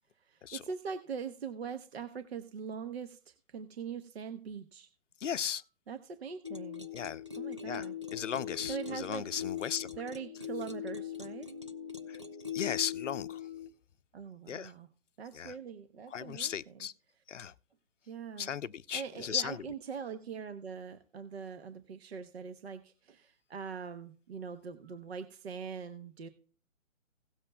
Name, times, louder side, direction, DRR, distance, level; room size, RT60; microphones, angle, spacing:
voice 1, 0.2-4.9 5.9-6.9 7.4-7.9 8.7-9.2 10.0-11.5 14.1-14.9 15.2-16.9 18.0-18.5 18.9-26.3, right 6 dB, 50° right, 1.0 m, -42 dB
voice 2, 5.2-5.6 6.9-7.2 7.6-7.9 8.1-9.9 12.1-12.2 12.5-13.4 14.5-14.7 15.3-15.5 16.1-16.9 17.3-17.5 18.4-19.6, left 8 dB, 65° left, 0.6 m, -36 dB
sound 1, 6.4-13.7, left 9 dB, 25° right, 0.4 m, -41 dB
17.5 x 7.5 x 2.3 m
figure-of-eight pair, 140°, 40 cm